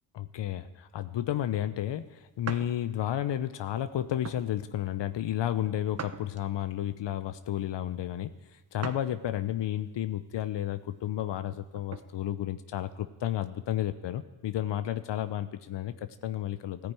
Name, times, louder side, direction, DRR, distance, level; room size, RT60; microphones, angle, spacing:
voice 1, 0.1-8.3 8.7-16.9, left 12 dB, 80° left, 12 dB, 0.8 m, -32 dB
sound 1, 2.5-2.7 3.3-3.5 4.2-4.5 6.0-6.7 8.8-9.1 9.6-9.7 11.4-12.1, right 5 dB, 35° right, 1.1 m, -40 dB
15.0 x 10.0 x 9.2 m, 1.1 s
supercardioid pair, 45°, 43 cm